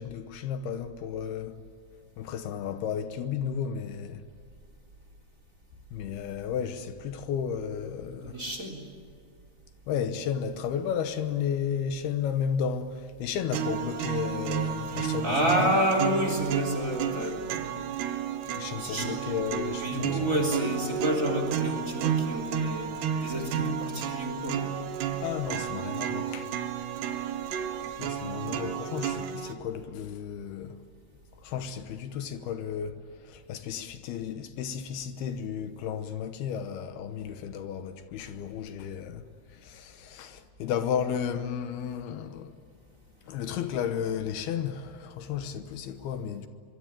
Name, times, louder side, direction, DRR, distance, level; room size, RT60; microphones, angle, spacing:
voice 1, 0.0-1.6 2.2-4.2 5.9-8.4 9.9-15.7 18.6-20.3 25.2-26.5 28.0-30.8 31.4-42.5 43.2-46.5, left 8 dB, 75° left, 2.9 m, -33 dB
voice 2, 8.2-8.8 14.9-17.5 18.8-19.1 19.8-22.9 23.2-24.7, right 1 dB, 20° right, 3.7 m, -29 dB
sound 1, 13.5-29.5, right 8 dB, 85° right, 3.5 m, -32 dB
25.0 x 24.0 x 9.0 m
omnidirectional pair, 4.7 m